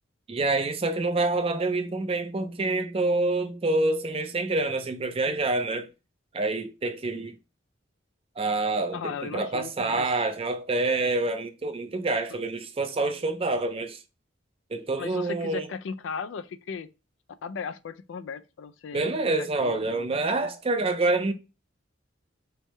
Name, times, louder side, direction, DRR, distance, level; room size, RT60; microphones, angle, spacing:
voice 1, 0.3-5.9 6.3-7.3 8.4-14.0 14.7-15.7 18.9-21.3, right 2 dB, 30° right, 0.4 m, -27 dB
voice 2, 8.9-10.1 12.3-12.4 15.0-16.9 17.4-20.1, left 5 dB, 75° left, 0.4 m, -37 dB
3.4 x 3.2 x 3.0 m
head